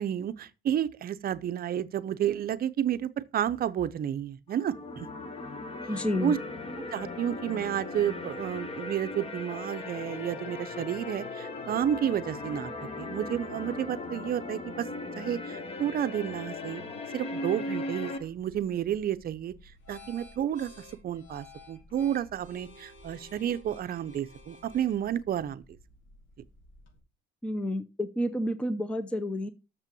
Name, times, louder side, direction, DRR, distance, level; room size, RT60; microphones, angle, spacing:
voice 1, 0.0-5.1 6.2-6.4 6.9-12.7 13.0-14.9 15.2-16.8 17.1-19.5 19.9-25.6, right 10 dB, 45° right, 0.6 m, -31 dB
sound 1, 4.5-18.2, left 2 dB, 30° left, 1.3 m, -38 dB
voice 2, 5.9-6.4 27.4-29.5, left 1 dB, 5° left, 0.6 m, -30 dB
sound 2, 18.2-27.0, left 2 dB, 70° left, 3.9 m, -53 dB
6.9 x 5.6 x 7.0 m
cardioid pair, 135°, 21 cm